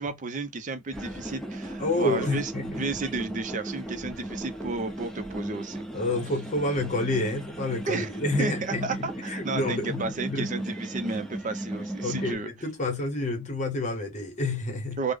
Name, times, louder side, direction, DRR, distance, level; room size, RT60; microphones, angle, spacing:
voice 1, 0.0-5.9 7.9-8.1 8.4-12.5 15.0-15.1, right 3 dB, 40° right, 0.5 m, -32 dB
sound 1, 0.9-12.3, right 1 dB, 5° left, 0.6 m, -36 dB
voice 2, 1.8-2.9 5.9-10.5 12.0-15.0, left 2 dB, 40° left, 0.8 m, -29 dB
3.3 x 2.1 x 3.4 m
head